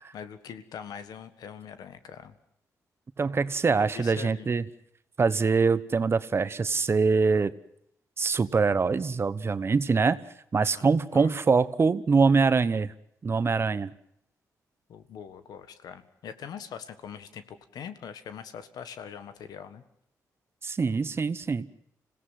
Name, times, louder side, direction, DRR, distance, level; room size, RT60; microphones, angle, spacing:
voice 1, 0.0-2.4 3.8-4.5 10.5-10.8 11.1-11.3 14.9-19.8, left 8 dB, 80° left, 11 dB, 1.6 m, -42 dB
voice 2, 3.2-4.6 5.2-7.5 8.2-10.2 10.5-12.9 13.2-13.9 20.6-21.7, right 4 dB, 40° right, 14 dB, 1.1 m, -24 dB
26.0 x 17.0 x 7.7 m, 0.73 s
cardioid pair, 75°, 7 cm